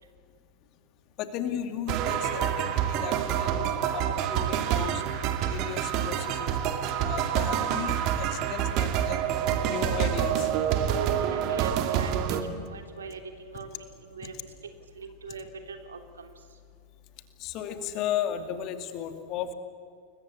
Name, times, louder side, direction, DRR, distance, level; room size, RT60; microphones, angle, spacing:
voice 1, 1.2-5.0 5.5-6.6 7.0-10.5 17.4-19.5, left 9 dB, 40° left, 8 dB, 2.5 m, -35 dB
sound 1, 1.9-12.4, right 9 dB, 40° right, 2.4 m, -27 dB
voice 2, 10.8-14.5 15.0-16.3, right 4 dB, 70° right, 5 dB, 3.2 m, -42 dB
29.5 x 22.0 x 8.6 m, 2.1 s
figure-of-eight pair, 90°, 0 cm